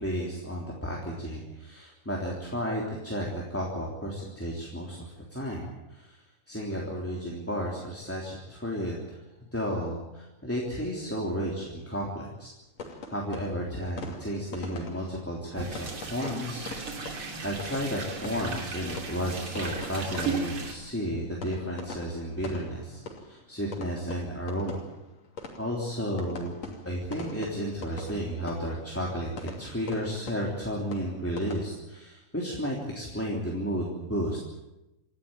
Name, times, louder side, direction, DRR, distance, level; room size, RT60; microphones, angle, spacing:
voice 1, 0.0-6.2 6.5-9.2 9.5-12.5 13.1-16.7 17.4-23.0 23.3-24.8 25.6-26.6 26.8-34.4, equal, 5° left, -3 dB, 3.0 m, -33 dB
sound 1, 12.8-31.6, left 3 dB, 60° left, 3.9 m, -44 dB
sound 2, 15.5-20.7, right 4 dB, 45° right, 3.6 m, -36 dB
27.5 x 13.0 x 9.1 m, 0.98 s
omnidirectional pair, 3.4 m